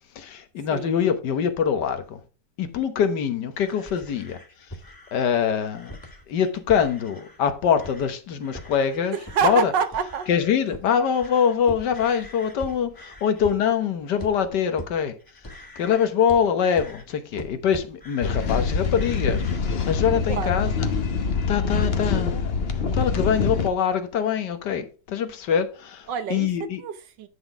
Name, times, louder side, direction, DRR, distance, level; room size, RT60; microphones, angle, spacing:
voice 1, 0.1-2.2 2.6-4.4 5.1-5.9 6.3-9.2 9.4-9.7 10.3-15.2 15.8-20.9 21.5-22.5 22.9-26.8, left 7 dB, 75° left, 1.6 m, -24 dB
sound 1, 3.5-7.4 7.7-8.1 8.4-19.6, left 1 dB, 10° left, 1.8 m, -42 dB
voice 2, 9.1-10.3 20.3-20.5 26.1-27.3, right 7 dB, 90° right, 1.6 m, -27 dB
sound 2, 18.2-23.7, left 5 dB, 40° left, 1.0 m, -25 dB
10.0 x 4.0 x 4.9 m
omnidirectional pair, 1.8 m